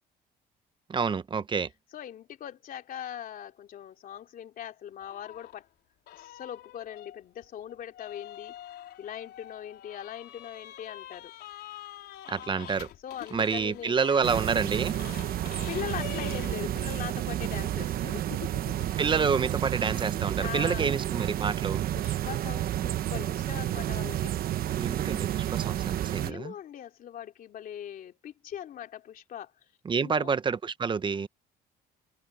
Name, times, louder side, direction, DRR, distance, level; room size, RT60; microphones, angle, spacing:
voice 1, 0.9-1.7 12.3-12.9 13.3-15.0 19.0-21.9 24.8-26.5 29.9-31.3, right 5 dB, 30° right, 0.9 m, -28 dB
voice 2, 1.9-5.7 6.2-8.6 9.0-11.3 13.0-14.3 15.7-18.8 20.0-21.0 21.9-24.3 26.1-29.5 29.9-30.3, left 10 dB, 55° left, 2.9 m, -41 dB
sound 1, 5.0-5.6 6.1-17.0, left 13 dB, 75° left, 4.2 m, -46 dB
sound 2, 14.2-26.3, right 12 dB, 60° right, 1.1 m, -31 dB
cardioid pair, 110°, 17 cm